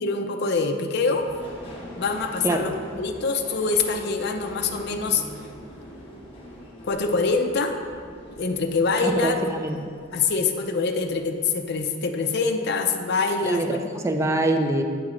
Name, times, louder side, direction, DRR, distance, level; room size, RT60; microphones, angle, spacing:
voice 1, 0.0-1.3 2.0-5.2 6.8-7.8 8.3-9.4 10.1-13.8 14.1-14.3, left 4 dB, 55° left, 5 dB, 0.5 m, -25 dB
Subway metro underground, 1.1-11.8 12.2-12.9 13.2-13.3, equal, 30° left, 1.2 m, -43 dB
voice 2, 9.0-9.9 13.4-14.8, right 1 dB, 15° right, 4 dB, 0.4 m, -24 dB
8.3 x 3.1 x 4.9 m, 2.2 s
head